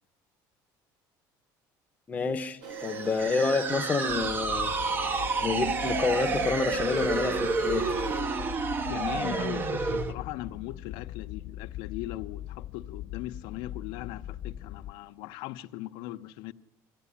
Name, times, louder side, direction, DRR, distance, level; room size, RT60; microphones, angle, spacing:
voice 1, 2.1-4.7 5.4-7.9, left 4 dB, 20° left, 0.9 m, -28 dB
sound 1, 2.6-8.2, right 5 dB, 65° right, 2.7 m, -39 dB
sound 2, 2.7-10.1, right 4 dB, 25° right, 0.8 m, -30 dB
sound 3, 4.1-14.9, left 12 dB, 45° left, 0.7 m, -41 dB
voice 2, 8.9-16.5, left 15 dB, 80° left, 0.8 m, -39 dB
23.5 x 15.0 x 9.9 m
cardioid pair, 160°, 8 cm